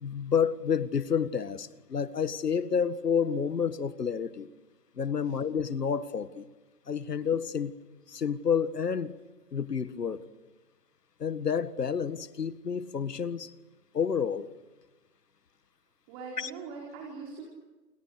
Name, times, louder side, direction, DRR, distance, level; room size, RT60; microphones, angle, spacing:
voice 1, 0.0-4.5 5.0-6.5 6.9-7.7 8.1-9.1 9.5-10.2 11.2-13.5 13.9-14.5 16.4-16.5, left 7 dB, 80° left, 1.9 m, -29 dB
voice 2, 16.1-17.5, right 4 dB, 20° right, 4.5 m, -42 dB
29.5 x 29.0 x 6.6 m
hypercardioid pair, 160°, 48 cm